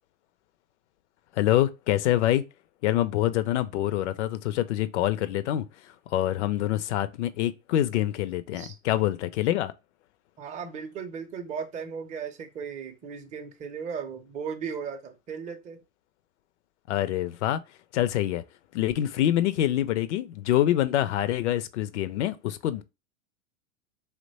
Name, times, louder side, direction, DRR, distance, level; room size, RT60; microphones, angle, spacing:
voice 1, 1.3-2.4 2.8-9.7 16.9-17.6 17.9-18.4 18.7-22.8, left 13 dB, 60° left, 0.5 m, -26 dB
voice 2, 10.4-15.8, right 6 dB, 20° right, 0.5 m, -36 dB
2.9 x 2.2 x 4.0 m
hypercardioid pair, 100°, 41 cm